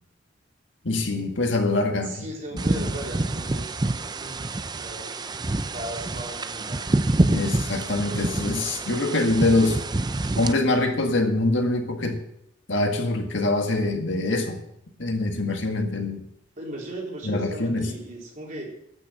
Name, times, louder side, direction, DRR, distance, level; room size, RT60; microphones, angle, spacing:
voice 1, 0.8-2.3 2.7-2.8 7.3-9.8 10.4-12.2 12.7-14.6 15.0-16.2 17.2-17.9, left 2 dB, 75° left, 4 dB, 1.8 m, -24 dB
voice 2, 2.0-5.2 5.5-7.0 16.6-18.7, right 1 dB, 45° right, -3 dB, 4.0 m, -37 dB
sound 1, 2.6-10.5, right 2 dB, 20° right, 0.5 m, -27 dB
12.0 x 6.6 x 8.9 m, 0.77 s
head